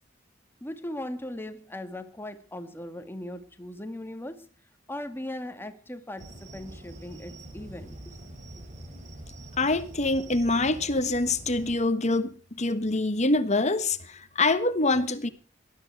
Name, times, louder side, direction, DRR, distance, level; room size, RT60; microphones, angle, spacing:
voice 1, 0.6-4.5 4.9-8.2, left 1 dB, 10° left, 1.9 m, -38 dB
sound 1, 6.2-11.8, right 1 dB, 40° right, 3.0 m, -44 dB
voice 2, 9.6-15.3, left 2 dB, 35° left, 1.4 m, -25 dB
19.5 x 13.0 x 4.7 m
head